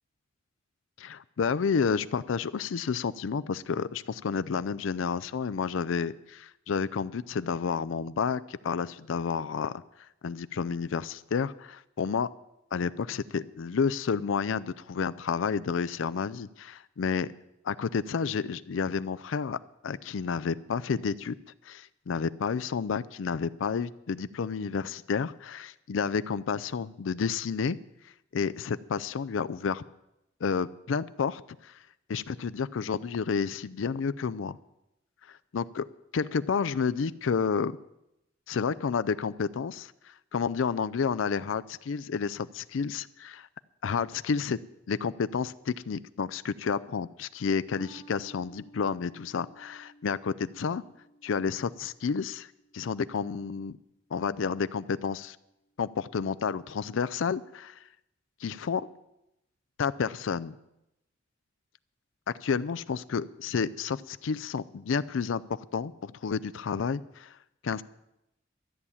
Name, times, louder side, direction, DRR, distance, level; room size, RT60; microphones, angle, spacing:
voice 1, 1.0-9.8 10.2-12.3 12.7-17.3 17.6-19.6 19.8-21.3 21.6-27.8 28.3-29.8 30.4-31.8 32.1-34.6 35.3-35.9 36.1-37.7 38.5-43.5 43.8-44.6 44.9-50.8 51.2-53.8 54.1-55.4 55.8-57.8 58.4-58.9 59.8-60.6 62.3-67.4 67.6-67.8, left 6 dB, 90° left, 16 dB, 0.4 m, -30 dB
sound 1, 47.8-54.5, right 1 dB, 20° right, 3.2 m, -56 dB
13.5 x 7.1 x 9.8 m, 0.86 s
head